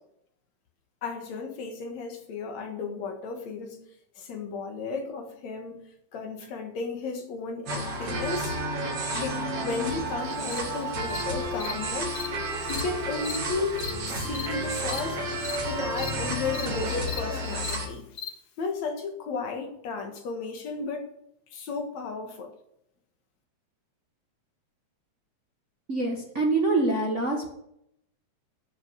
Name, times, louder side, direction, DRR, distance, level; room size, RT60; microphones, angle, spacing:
voice 1, 1.0-3.8 4.2-8.6 9.1-12.1 12.7-15.2 15.6-18.0 18.6-21.1 21.5-22.5, left 4 dB, 70° left, 4 dB, 2.9 m, -34 dB
sound 1, 7.7-17.9, right 1 dB, 55° right, 3.4 m, -31 dB
Cricket, 10.5-10.6 11.1-11.2 11.6-11.7 12.1-12.3 12.6-12.8 13.2-13.4 13.8-13.9 14.3-14.5 14.8-15.0 15.4-15.6 15.9-16.1 16.5-16.7 17.0-17.2 17.6-17.8 18.1-18.3, left 8 dB, 90° left, 0.8 m, -36 dB
voice 2, 25.9-27.5, right 2 dB, 35° right, 0 dB, 1.3 m, -25 dB
12.5 x 6.5 x 6.4 m, 0.76 s
omnidirectional pair, 3.3 m